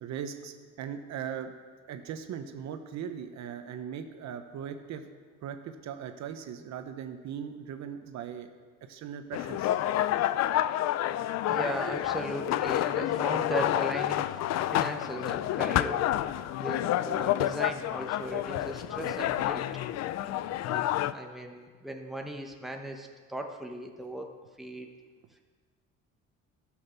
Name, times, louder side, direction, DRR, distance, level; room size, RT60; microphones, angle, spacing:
voice 1, 0.0-1.5 1.9-5.1 5.4-8.5 8.8-9.7, right 8 dB, 60° right, 7 dB, 0.9 m, -39 dB
sound 1, 9.3-21.1, left 13 dB, 60° left, 0.5 m, -29 dB
voice 2, 11.4-16.0 16.5-19.7 20.6-24.3 24.6-24.9, right 1 dB, ahead, 2 dB, 1.0 m, -37 dB
13.0 x 6.3 x 6.9 m, 1.5 s
cardioid pair, 125°, 31 cm